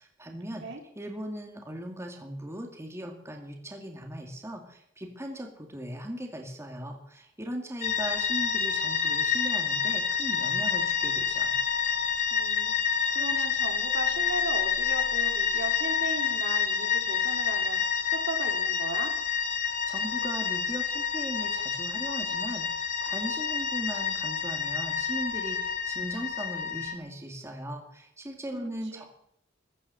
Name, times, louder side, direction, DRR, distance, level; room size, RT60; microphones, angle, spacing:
voice 1, 0.0-0.6 1.0-11.6 19.6-29.1, equal, 15° right, 2 dB, 2.3 m, -38 dB
sound 1, 7.8-26.9, left 7 dB, 40° left, 1.6 m, -28 dB
voice 2, 12.3-17.8 18.1-19.1 28.5-29.1, right 2 dB, 65° right, 3 dB, 2.8 m, -37 dB
15.5 x 12.5 x 6.9 m, 0.70 s
head